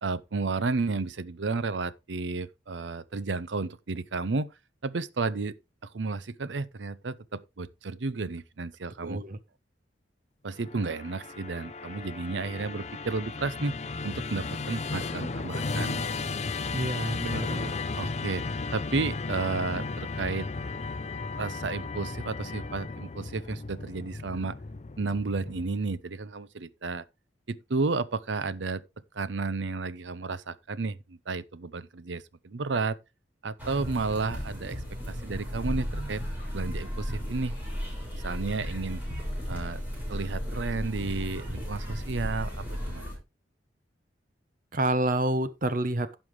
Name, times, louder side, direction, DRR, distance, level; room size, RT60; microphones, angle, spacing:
voice 1, 0.0-4.5 4.8-5.5 5.8-9.2 10.4-13.8 14.0-16.1 18.0-18.4 18.7-20.5 21.4-24.6 25.0-27.0 27.5-28.8 29.1-33.0 33.4-34.8 35.1-36.2 36.5-37.5 38.1-39.0 39.5-39.8 40.1-43.2, right 3 dB, 90° right, 0.7 m, -32 dB
voice 2, 9.0-9.4 16.7-17.7 44.7-46.2, right 1 dB, 50° right, 0.9 m, -28 dB
Musical instrument, 10.6-25.9, left 3 dB, 40° left, 0.6 m, -35 dB
Softball Park day, 33.6-43.2, equal, 10° right, 5.5 m, -34 dB
16.0 x 5.7 x 3.1 m
head